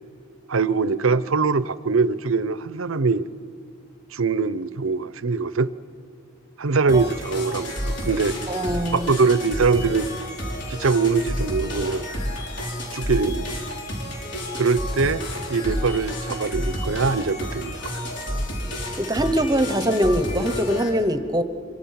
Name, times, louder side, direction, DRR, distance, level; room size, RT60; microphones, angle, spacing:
voice 1, 0.5-3.3 4.1-5.7 6.6-8.4 8.9-10.1 10.7-12.0 12.9-13.8 14.6-15.2 15.5-17.8, right 4 dB, 90° right, 16 dB, 0.7 m, -22 dB
sound 1, 6.9-20.9, equal, 60° left, 4.9 m, -30 dB
voice 2, 8.5-9.1 19.0-21.4, equal, 20° right, 10 dB, 1.0 m, -22 dB
27.0 x 24.0 x 5.9 m, 2.3 s
head